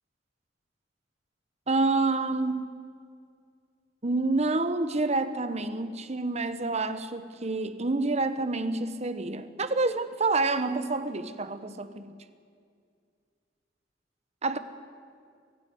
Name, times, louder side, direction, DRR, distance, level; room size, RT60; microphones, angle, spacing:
voice 1, 1.7-2.7 4.0-12.2 14.4-14.6, right 3 dB, 35° right, 1.1 m, -28 dB
24.0 x 15.5 x 9.4 m
head